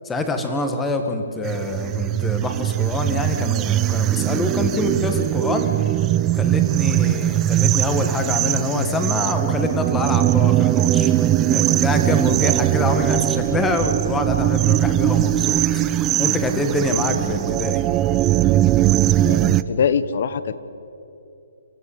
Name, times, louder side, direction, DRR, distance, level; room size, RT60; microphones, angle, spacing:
voice 1, 0.0-5.7 6.3-15.6 15.9-17.8, left 2 dB, 5° left, 5 dB, 1.7 m, -25 dB
sound 1, 1.4-19.6, right 13 dB, 15° right, 0.5 m, -20 dB
voice 2, 19.2-20.6, left 7 dB, 50° left, 14 dB, 1.1 m, -23 dB
28.5 x 14.0 x 8.7 m, 2.8 s
hypercardioid pair, 170°, 0 cm